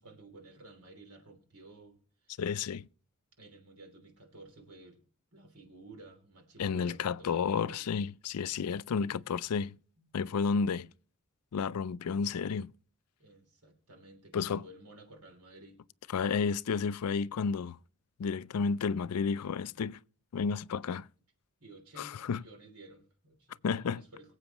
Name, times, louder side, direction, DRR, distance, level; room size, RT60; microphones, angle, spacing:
voice 1, 0.0-2.0 2.2-2.4 3.4-5.0 5.3-7.8 10.0-10.1 10.5-10.7 13.2-15.8 21.6-24.3, right 2 dB, 85° right, 3.1 m, -53 dB
voice 2, 2.4-2.8 6.6-9.8 10.1-10.9 11.5-12.7 14.3-14.6 16.1-17.8 18.2-20.0 20.3-21.1 22.0-22.4 23.6-24.0, left 5 dB, 85° left, 0.4 m, -31 dB
23.5 x 8.1 x 3.0 m
head